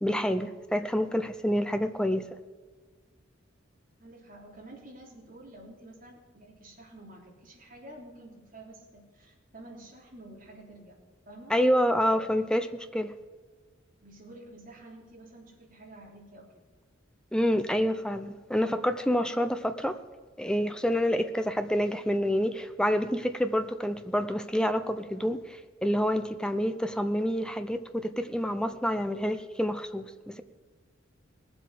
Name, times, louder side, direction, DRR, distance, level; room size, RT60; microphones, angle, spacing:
voice 1, 0.0-2.3 11.5-13.1 17.3-20.0 20.4-30.4, equal, 5° left, 9 dB, 0.6 m, -28 dB
voice 2, 4.0-11.6 12.1-12.4 14.0-16.6 19.8-19.9, right 1 dB, 45° right, -2 dB, 3.4 m, -49 dB
19.5 x 7.7 x 5.0 m, 1.4 s
head